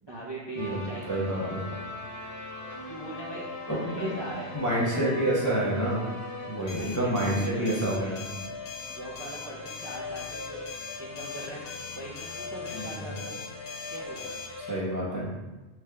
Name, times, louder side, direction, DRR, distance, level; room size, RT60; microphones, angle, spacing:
voice 1, 0.0-1.8 2.8-5.3 6.6-8.2 8.8-10.6 11.0-11.6 11.9-13.3 13.9-14.3 15.1-15.3, right 1 dB, 30° right, -6 dB, 0.5 m, -41 dB
sound 1, 0.6-14.8, left 2 dB, 55° left, 1.0 m, -41 dB
voice 2, 0.6-1.6 3.7-4.1 4.5-6.0 6.5-8.3 12.7-13.1 14.7-15.3, right 1 dB, 20° left, -6 dB, 0.6 m, -28 dB
sound 2, 6.7-14.5, left 6 dB, 85° left, 0.9 m, -42 dB
6.1 x 3.3 x 2.2 m, 1.2 s
omnidirectional pair, 1.2 m